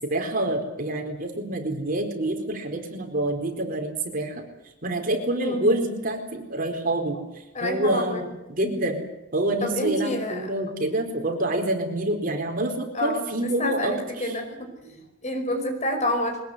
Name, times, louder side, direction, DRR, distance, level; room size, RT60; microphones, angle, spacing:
voice 1, 0.0-4.4 4.8-7.2 7.6-9.0 9.3-14.4, right 1 dB, 45° right, 3 dB, 4.3 m, -27 dB
voice 2, 7.5-8.2 8.6-8.8 9.6-10.5 12.9-15.0 15.2-16.4, left 1 dB, 35° left, 6 dB, 5.3 m, -28 dB
22.5 x 20.5 x 8.1 m, 0.95 s
head